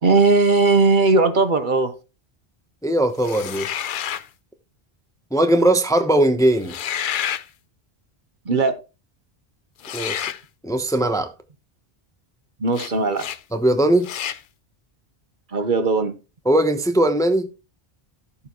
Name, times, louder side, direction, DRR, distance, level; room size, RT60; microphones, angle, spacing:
voice 1, 0.0-1.9 8.5-8.8 12.6-13.3 15.5-16.1, right 3 dB, 55° right, 1.1 m, -18 dB
voice 2, 2.8-3.7 5.3-6.8 9.9-10.3 10.6-11.3 13.5-14.1 16.5-17.5, right 1 dB, 5° left, 0.8 m, -19 dB
sound 1, 3.2-4.3 6.6-7.5 9.8-10.4 12.7-12.9 13.2-13.4 14.0-14.4, left 9 dB, 60° left, 0.7 m, -29 dB
13.5 x 6.8 x 3.0 m
omnidirectional pair, 1.0 m